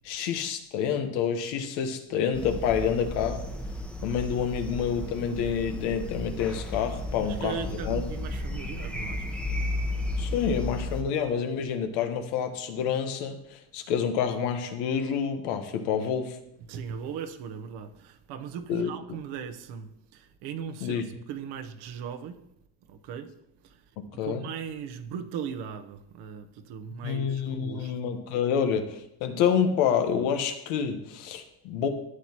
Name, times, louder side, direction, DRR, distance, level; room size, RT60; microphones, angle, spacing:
voice 1, 0.0-3.4 4.0-8.0 10.2-16.4 18.7-18.9 20.8-21.0 24.0-24.4 27.0-31.9, left 7 dB, 90° left, 1.3 m, -28 dB
sound 1, 2.3-11.0, left 1 dB, 5° left, 0.9 m, -34 dB
voice 2, 7.2-9.4 16.7-21.0 21.3-22.5 22.9-23.4 23.6-23.8 24.2-28.0, right 7 dB, 75° right, 1.0 m, -38 dB
13.0 x 7.9 x 3.0 m
cardioid pair, 110°, 40 cm